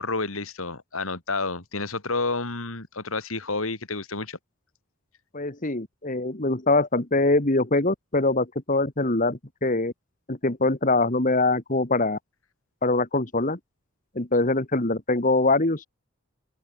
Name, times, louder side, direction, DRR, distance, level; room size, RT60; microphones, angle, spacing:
voice 1, 0.0-4.4, left 3 dB, 75° left, 3.3 m, -30 dB
voice 2, 5.3-9.9 10.3-12.2 12.8-13.6 14.2-15.9, left 2 dB, 40° left, 1.9 m, -23 dB
head